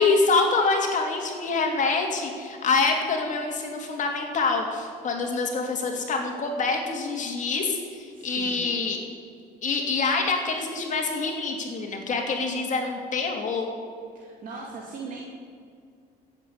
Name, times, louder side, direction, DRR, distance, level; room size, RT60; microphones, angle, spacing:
voice 1, 0.0-9.0 9.6-13.7, left 4 dB, 45° left, 2 dB, 2.9 m, -26 dB
voice 2, 8.1-8.7 14.1-15.3, right 4 dB, 55° right, -2 dB, 2.5 m, -39 dB
15.5 x 8.1 x 8.3 m, 2.2 s
cardioid pair, 110°, 17 cm